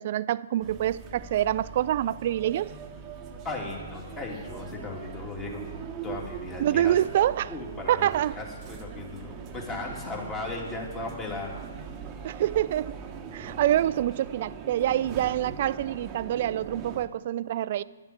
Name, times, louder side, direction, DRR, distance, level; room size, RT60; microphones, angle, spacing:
voice 1, 0.0-2.7 6.6-7.5 7.9-8.3 12.2-13.0 13.3-17.8, right 12 dB, 45° right, 0.3 m, -26 dB
sound 1, 0.6-17.1, right 6 dB, 20° right, 1.1 m, -41 dB
voice 2, 3.4-6.9 7.5-11.5, left 2 dB, 20° left, 2.7 m, -37 dB
10.5 x 7.0 x 8.9 m
figure-of-eight pair, 130°, 0 cm